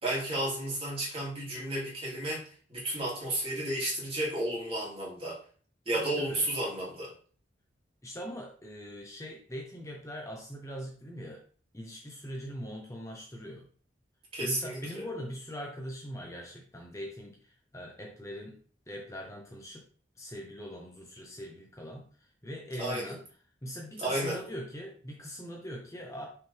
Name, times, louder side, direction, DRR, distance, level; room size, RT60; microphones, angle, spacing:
voice 1, 0.0-5.4 5.9-7.1 14.3-15.1 22.8-23.2 24.0-24.4, right 1 dB, 30° right, -4 dB, 2.9 m, -32 dB
voice 2, 5.9-6.5 8.0-11.4 11.7-13.7 14.4-18.6 18.9-19.8 20.2-22.1 22.4-23.2 23.6-26.3, equal, 15° left, 0 dB, 0.9 m, -42 dB
6.3 x 4.8 x 3.5 m, 0.43 s
head